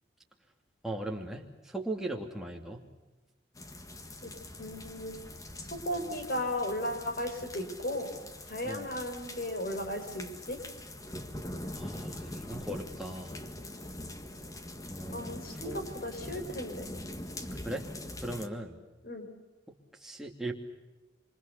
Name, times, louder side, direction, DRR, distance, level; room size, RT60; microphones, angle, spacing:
voice 1, 0.8-2.8 8.6-8.9 11.7-13.4 14.9-15.9 17.6-17.9 18.2-18.8 19.9-20.5, right 1 dB, ahead, 0 dB, 2.8 m, -38 dB
sound 1, 3.5-18.5, left 1 dB, 20° left, 1.7 m, -43 dB
voice 2, 4.6-5.2 5.7-8.1 8.5-10.6 15.1-16.9 19.0-19.3, left 1 dB, 50° left, 6 dB, 5.2 m, -35 dB
27.5 x 25.5 x 6.9 m, 1.2 s
head